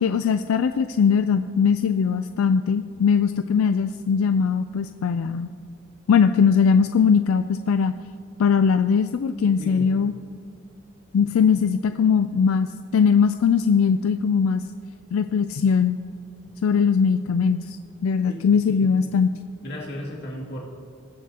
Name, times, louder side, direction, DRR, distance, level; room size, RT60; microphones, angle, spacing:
voice 1, 0.0-5.5 6.1-7.9 8.4-10.1 11.1-14.6 15.1-16.0 16.6-17.8 18.0-19.3, left 6 dB, 85° left, 10 dB, 0.3 m, -20 dB
voice 2, 9.6-9.9 18.3-18.9 19.6-20.6, left 1 dB, 50° left, -2 dB, 2.3 m, -35 dB
20.0 x 7.4 x 2.9 m, 2.3 s
head